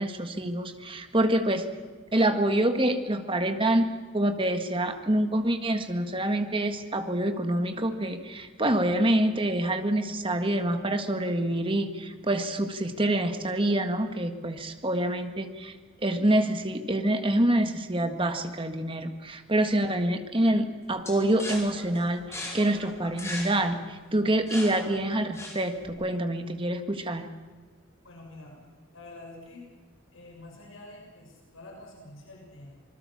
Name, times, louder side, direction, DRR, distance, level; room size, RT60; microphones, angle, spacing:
voice 1, 0.0-1.6 2.1-15.7 16.0-27.3, right 1 dB, 25° right, 7 dB, 1.7 m, -26 dB
sound 1, 21.0-25.9, left 2 dB, 15° left, 4.9 m, -39 dB
voice 2, 28.0-28.6 28.9-29.6 30.1-32.7, left 2 dB, 70° left, -1 dB, 6.8 m, -47 dB
26.0 x 20.5 x 7.2 m, 1.4 s
head